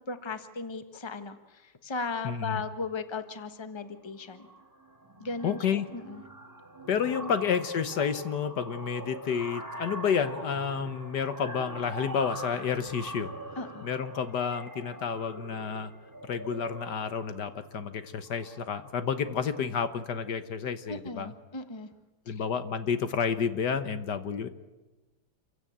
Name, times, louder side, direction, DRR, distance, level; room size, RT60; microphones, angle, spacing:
voice 1, 0.0-4.5 5.2-6.2 7.2-7.3 13.6-13.8 20.9-21.9 22.3-22.4, left 4 dB, 15° left, 9 dB, 1.2 m, -37 dB
voice 2, 2.2-2.6 5.4-5.9 6.9-13.3 13.8-15.9 16.2-21.3 22.3-24.5, left 7 dB, 65° left, 11 dB, 1.6 m, -30 dB
sound 1, 3.3-3.5 3.8-4.0 4.3-19.2, right 1 dB, 10° right, 3.2 m, -43 dB
28.0 x 16.0 x 8.8 m, 1.2 s
omnidirectional pair, 2.0 m